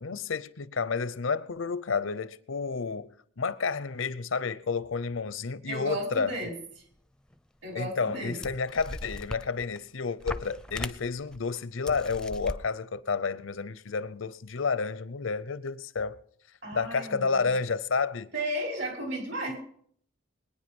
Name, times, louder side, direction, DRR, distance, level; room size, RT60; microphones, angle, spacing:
voice 1, 0.0-6.3 7.7-16.2 16.7-18.3, left 5 dB, 90° left, 0.7 m, -30 dB
voice 2, 5.7-6.6 7.6-8.4 16.6-17.5 18.3-19.6, right 1 dB, 65° right, 5.4 m, -34 dB
sound 1, 7.3-7.4 8.1-8.2 8.4-9.8 10.2-11.4 11.9-12.6, left 1 dB, 5° left, 0.5 m, -38 dB
21.5 x 10.0 x 5.4 m
head